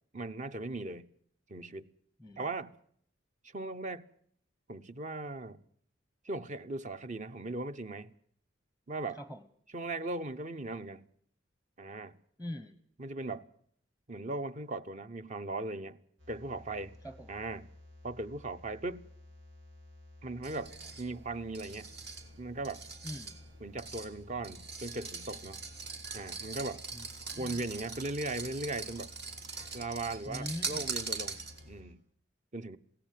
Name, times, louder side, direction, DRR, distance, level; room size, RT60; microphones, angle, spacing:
voice 1, 0.1-1.1 1.5-1.9 2.4-2.7 3.4-4.0 4.7-5.6 6.2-8.1 8.9-9.2 9.7-11.0 11.8-12.2 13.0-13.5 14.1-16.0 16.3-17.0 17.3-17.7 18.0-19.0 20.2-20.7 21.0-21.9 22.4-22.8 23.6-25.6 26.1-26.8 27.4-29.1 29.7-32.0 32.5-32.8, right 2 dB, 40° right, 1.0 m, -38 dB
voice 2, 9.1-9.4 12.4-12.8 17.0-17.3 23.0-23.4 26.9-27.7 30.3-30.8, left 1 dB, 10° right, 1.0 m, -43 dB
sound 1, 16.2-31.9, left 1 dB, 85° right, 5.3 m, -54 dB
sound 2, 20.4-31.8, right 4 dB, 60° right, 2.9 m, -42 dB
22.0 x 17.0 x 7.6 m
head